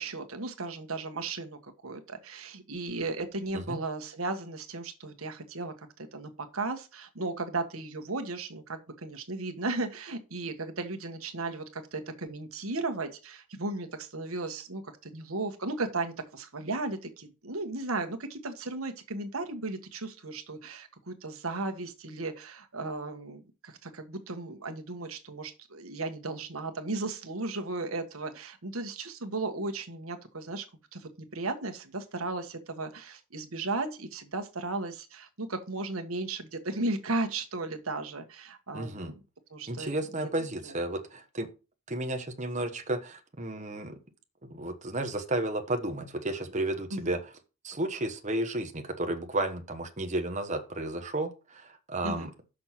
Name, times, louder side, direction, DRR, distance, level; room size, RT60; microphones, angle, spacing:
voice 1, 0.0-30.6 30.9-39.2 39.5-40.3 40.6-40.8 46.9-47.1 52.0-52.3, right 3 dB, 85° right, 6 dB, 1.4 m, -35 dB
voice 2, 38.7-39.1 39.7-41.5 41.9-44.0 44.5-47.2 47.6-52.3, right 1 dB, 35° right, 5 dB, 1.2 m, -32 dB
6.4 x 6.2 x 5.8 m, 0.31 s
head